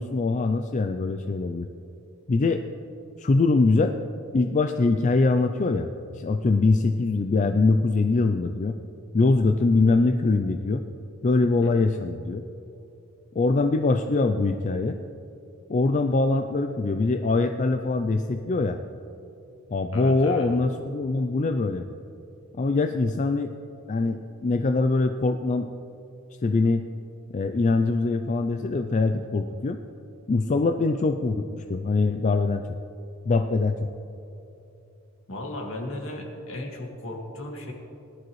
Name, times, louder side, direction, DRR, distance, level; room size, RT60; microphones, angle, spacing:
voice 1, 0.0-1.7 2.3-2.6 3.2-4.0 4.3-8.8 9.1-10.8 11.2-12.4 13.4-15.0 15.7-18.8 19.7-21.8 22.6-23.5 23.9-25.7 26.4-26.8 27.3-29.8 30.3-32.7 33.3-33.9, left 3 dB, 35° left, 7 dB, 0.4 m, -23 dB
voice 2, 19.9-20.5 35.3-37.7, left 1 dB, 65° left, 0 dB, 2.0 m, -35 dB
18.5 x 12.0 x 3.1 m, 2.8 s
head